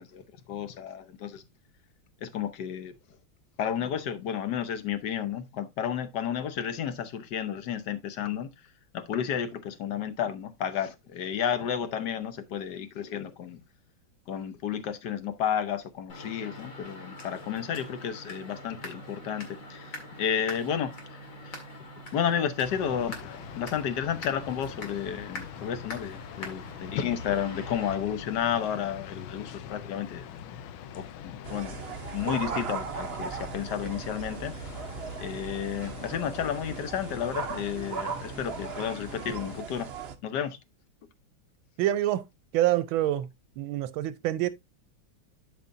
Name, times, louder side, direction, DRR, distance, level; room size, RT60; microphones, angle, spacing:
voice 1, 0.0-1.4 2.2-2.9 3.6-8.5 8.9-13.6 14.3-19.9 20.2-21.2 21.4-21.6 22.1-30.2 30.9-31.8 32.1-34.5 35.2-39.9 40.2-40.6, left 8 dB, 65° left, 1.4 m, -32 dB
sound 1, 16.1-27.9, left 1 dB, 45° left, 2.2 m, -44 dB
sound 2, 22.6-39.6, left 8 dB, 90° left, 1.5 m, -44 dB
sound 3, 31.4-40.1, right 6 dB, 50° right, 0.7 m, -37 dB
voice 2, 41.8-42.3 42.5-43.3 43.6-44.5, right 13 dB, 85° right, 1.5 m, -26 dB
12.0 x 4.9 x 2.6 m
omnidirectional pair, 2.2 m